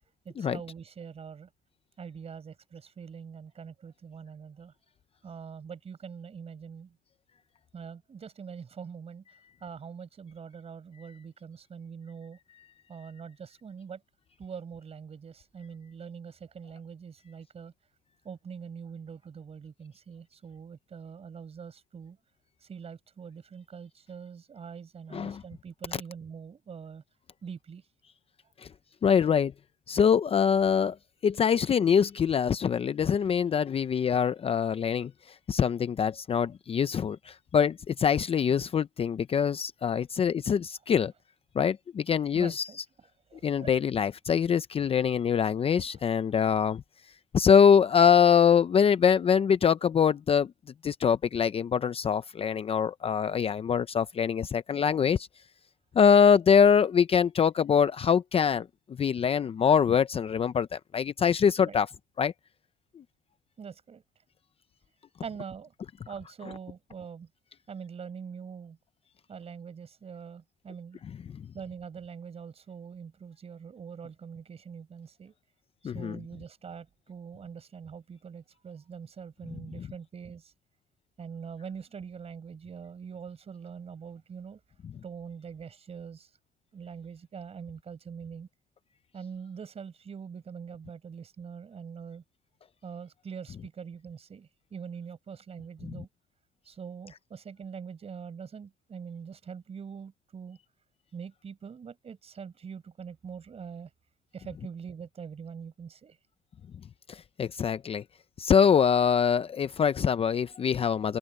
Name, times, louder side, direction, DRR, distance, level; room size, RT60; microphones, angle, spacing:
voice 1, 0.2-1.5 2.0-4.7 5.2-6.9 7.7-9.2 9.6-12.4 12.9-14.0 14.4-17.7 18.2-22.2 22.7-27.0 27.4-27.8 42.3-42.8 43.3-43.7 61.6-61.8 63.6-64.0 65.2-65.7 66.1-67.3 67.7-68.8 69.3-71.0 71.5-75.3 75.8-80.5 81.2-84.6 85.0-86.3 86.7-88.5 89.1-92.2 92.8-96.1 96.6-100.6 101.1-103.9 104.3-106.2, right 6 dB, 35° right, 4.9 m, -43 dB
voice 2, 25.1-25.4 25.9-26.0 29.0-29.5 29.9-31.0 31.2-41.1 41.5-42.7 43.4-46.8 47.3-50.5 50.8-55.3 55.9-61.9 62.2-62.3 71.3-71.4 75.8-76.2 79.8-79.9 95.8-95.9 107.1-108.0 108.4-111.2, left 7 dB, 35° left, 0.6 m, -24 dB
open air
cardioid pair, 110°, 17 cm